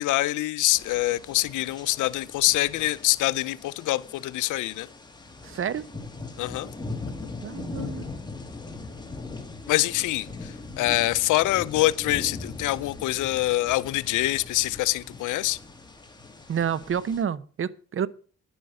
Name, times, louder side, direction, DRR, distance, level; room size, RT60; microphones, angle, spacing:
voice 1, 0.0-4.9 6.4-6.7 9.7-15.6, left 17 dB, 85° left, 0.6 m, -25 dB
sound 1, 0.7-17.2, left 3 dB, 15° left, 2.3 m, -40 dB
voice 2, 5.4-5.9 7.4-8.1 16.5-18.1, right 8 dB, 45° right, 0.8 m, -29 dB
10.5 x 10.5 x 5.4 m
cardioid pair, 90°, 30 cm